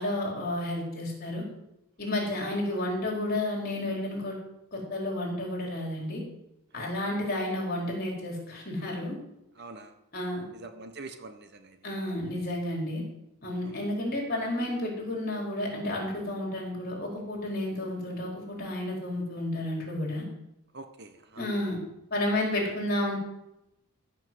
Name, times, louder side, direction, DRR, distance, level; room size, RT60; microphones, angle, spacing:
voice 1, 0.0-1.4 2.0-4.4 4.7-6.2 6.7-9.1 10.1-10.4 11.8-13.0 13.4-20.2 21.4-21.8 22.1-23.2, left 1 dB, 45° left, -1 dB, 4.7 m, -31 dB
voice 2, 9.5-10.0 10.5-12.2 13.6-13.8 20.7-21.5, right 3 dB, 50° right, 7 dB, 1.2 m, -46 dB
15.0 x 6.0 x 7.8 m, 0.86 s
head